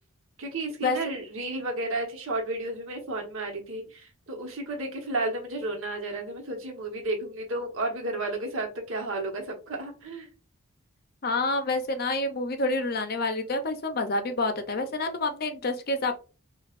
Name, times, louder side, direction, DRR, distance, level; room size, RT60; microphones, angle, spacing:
voice 1, 0.4-10.3, right 2 dB, 75° right, 2 dB, 1.2 m, -32 dB
voice 2, 11.2-16.1, left 2 dB, 45° left, 7 dB, 0.5 m, -28 dB
5.3 x 2.3 x 2.4 m, 0.34 s
head